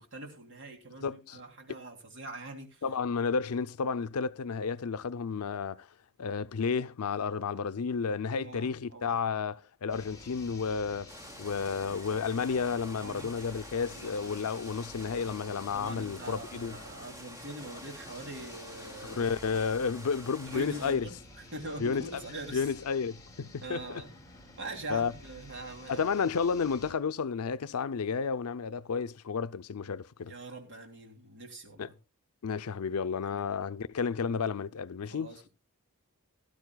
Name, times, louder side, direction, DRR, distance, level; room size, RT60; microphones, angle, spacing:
voice 1, 0.0-2.8 8.3-9.2 13.0-13.3 13.8-14.4 15.7-19.3 20.5-21.2 21.5-22.7 23.4-24.1 24.6-26.2 30.3-31.9 33.2-33.5 35.1-35.5, right 2 dB, 55° right, 2.9 m, -43 dB
voice 2, 1.0-1.4 2.8-5.9 6.2-11.1 11.4-16.8 19.0-21.1 21.8-22.2 22.5-24.0 24.9-25.1 25.9-30.3 31.8-31.9 32.4-35.3, left 5 dB, 70° left, 0.5 m, -32 dB
sound 1, 9.9-26.9, left 1 dB, 15° left, 2.6 m, -51 dB
sound 2, 11.1-21.0, left 1 dB, 15° right, 2.6 m, -48 dB
17.5 x 12.0 x 2.3 m
head